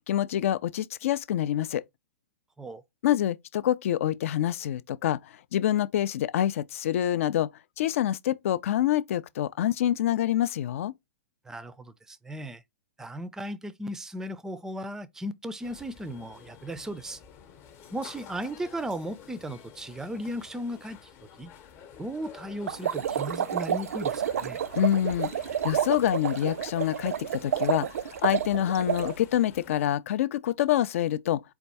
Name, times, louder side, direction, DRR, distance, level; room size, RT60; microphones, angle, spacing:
voice 1, 0.1-1.8 3.0-7.5 7.8-10.9 24.8-31.4, left 11 dB, 60° left, 0.4 m, -26 dB
voice 2, 11.4-12.6 13.0-17.2 17.9-21.1 21.4-21.5 22.0-24.6, equal, 5° right, 0.4 m, -36 dB
sound 1, 15.6-29.9, left 8 dB, 35° left, 0.8 m, -50 dB
sound 2, 22.7-29.1, right 9 dB, 75° right, 0.4 m, -30 dB
4.3 x 2.3 x 4.0 m
hypercardioid pair, 120°, 8 cm